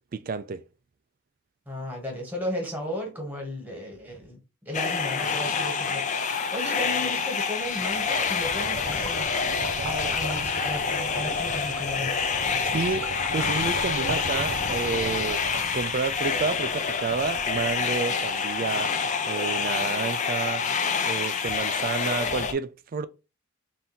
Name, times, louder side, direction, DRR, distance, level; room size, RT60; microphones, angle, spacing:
voice 1, 0.1-0.6 12.6-15.4 15.7-18.9 19.3-20.6 21.0-23.1, right 5 dB, 40° right, 0.3 m, -30 dB
voice 2, 1.7-4.4 4.6-9.3 9.8-12.2, left 1 dB, 5° right, 1.3 m, -34 dB
sound 1, 4.7-22.5, left 5 dB, 35° left, 0.4 m, -27 dB
sound 2, 7.3-18.5, right 2 dB, 70° right, 0.8 m, -37 dB
3.6 x 2.6 x 4.2 m
head